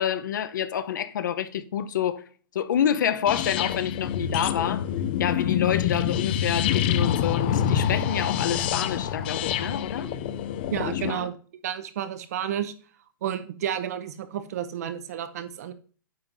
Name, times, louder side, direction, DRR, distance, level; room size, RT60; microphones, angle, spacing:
voice 1, 0.0-4.9 5.2-10.1 11.1-11.3, left 9 dB, 60° left, 0.7 m, -28 dB
sound 1, 3.3-11.1, left 9 dB, 25° left, 0.4 m, -26 dB
voice 2, 10.7-11.3 11.6-12.7 13.2-15.7, right 10 dB, 45° right, 0.7 m, -31 dB
9.5 x 7.1 x 2.6 m
hypercardioid pair, 165°, 12 cm